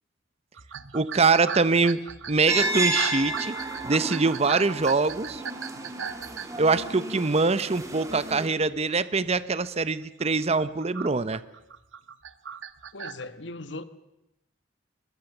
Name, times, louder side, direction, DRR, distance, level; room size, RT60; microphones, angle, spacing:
sound 1, 0.6-7.2 7.8-8.2 8.5-8.9 9.3-9.4 10.0-13.2, right 7 dB, 85° right, 1.1 m, -38 dB
voice 1, 0.9-2.0 2.3-3.5 3.8-5.4 6.6-11.4, right 4 dB, 35° right, 15 dB, 0.8 m, -23 dB
sound 2, 2.5-8.5, right 1 dB, 15° right, 2.8 m, -32 dB
voice 2, 12.9-13.8, left 2 dB, 65° left, 12 dB, 1.4 m, -38 dB
22.0 x 21.0 x 7.2 m, 0.90 s
head